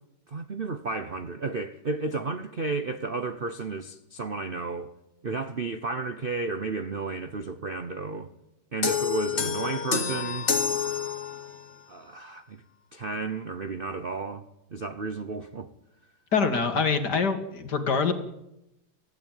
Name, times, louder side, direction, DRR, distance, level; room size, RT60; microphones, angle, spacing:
voice 1, 0.3-4.9 5.2-8.3 8.7-10.5 11.9-12.6 12.9-14.4 14.7-15.7, right 3 dB, 45° right, 0.7 m, -32 dB
sound 1, 8.8-11.7, left 6 dB, 35° left, 2.0 m, -28 dB
voice 2, 16.3-18.1, left 5 dB, 55° left, 2.5 m, -25 dB
25.0 x 16.0 x 9.1 m
omnidirectional pair, 2.2 m